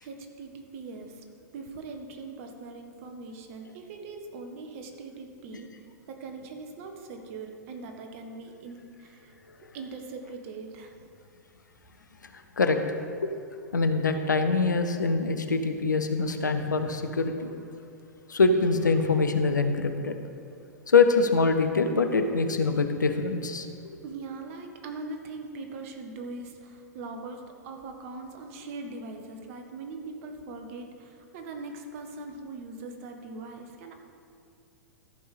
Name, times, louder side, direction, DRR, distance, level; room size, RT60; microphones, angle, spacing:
voice 1, 0.0-1.2 1.5-5.7 6.1-9.3 9.7-10.9 24.0-33.9, right 3 dB, 50° right, 4 dB, 1.3 m, -41 dB
voice 2, 12.3-12.8 13.2-13.3 13.7-17.5 18.3-20.2 20.9-24.0, left 4 dB, 80° left, 7 dB, 0.8 m, -24 dB
14.0 x 5.5 x 5.0 m, 2.4 s
figure-of-eight pair, 105°, 10 cm